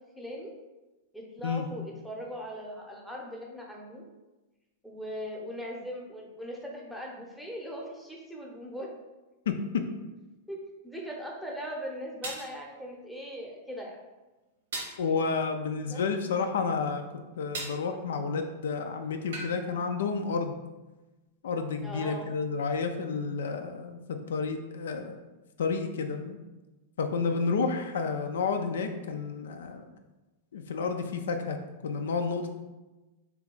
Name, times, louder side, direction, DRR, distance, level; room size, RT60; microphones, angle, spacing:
voice 1, 0.1-0.5 1.1-4.0 4.8-8.9 10.5-10.6 10.8-14.0 15.9-16.0 21.8-22.3, equal, ahead, -2 dB, 0.7 m, -39 dB
voice 2, 9.5-9.8 15.0-17.0 17.4-20.5 21.4-25.2 25.6-26.4 27.0-29.9 30.5-31.6 31.8-32.5, left 5 dB, 80° left, 6 dB, 0.3 m, -30 dB
sound 1, 11.1-11.2 12.2-12.5 14.7-15.0 17.5-17.8 19.3-19.6, right 2 dB, 80° right, 0.9 m, -36 dB
2.7 x 2.3 x 3.8 m, 1.1 s
hypercardioid pair, 110°, 0 cm